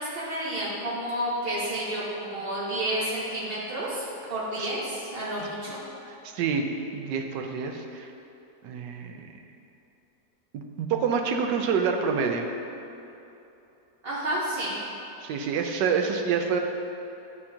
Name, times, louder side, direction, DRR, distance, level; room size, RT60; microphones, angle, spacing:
voice 1, 0.0-5.8 14.0-14.7, right 1 dB, 35° right, -8 dB, 1.9 m, -30 dB
voice 2, 6.1-6.7 6.9-8.1 8.6-9.3 10.5-12.5 15.2-16.6, right 6 dB, 90° right, 4 dB, 1.3 m, -27 dB
11.0 x 4.3 x 2.8 m, 2.9 s
omnidirectional pair, 1.8 m